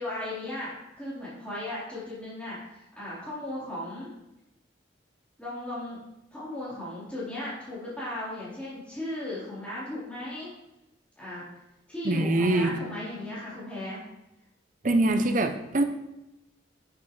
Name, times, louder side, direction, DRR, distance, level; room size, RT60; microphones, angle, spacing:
voice 1, 0.0-4.1 5.4-6.0 6.3-10.5 11.2-11.4 11.9-14.0 14.9-15.4, left 1 dB, 5° left, -10 dB, 4.0 m, -36 dB
voice 2, 12.0-12.8 14.8-15.8, right 2 dB, 40° right, 6 dB, 0.7 m, -23 dB
10.5 x 9.5 x 3.3 m, 0.91 s
head